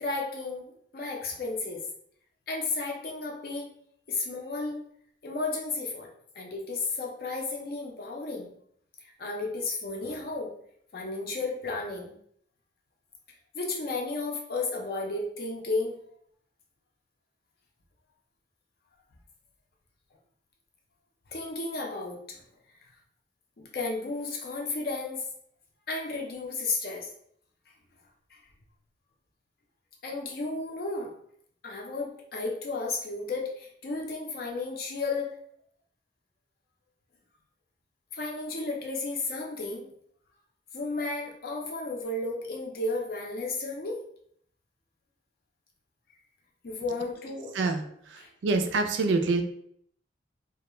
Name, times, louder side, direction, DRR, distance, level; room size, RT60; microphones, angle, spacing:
voice 1, 0.0-1.8 2.5-3.7 4.1-4.8 5.2-6.1 6.4-8.5 9.0-10.5 10.9-12.1 13.5-15.9 21.3-22.4 23.7-25.2 25.9-27.1 28.3-28.4 30.0-31.1 31.6-35.3 38.1-39.9 40.7-44.0 46.6-47.5 48.2-48.3, left 3 dB, 50° left, 0 dB, 0.5 m, -33 dB
voice 2, 48.4-49.4, right 3 dB, 75° right, 6 dB, 0.3 m, -25 dB
2.3 x 2.1 x 3.0 m, 0.67 s
head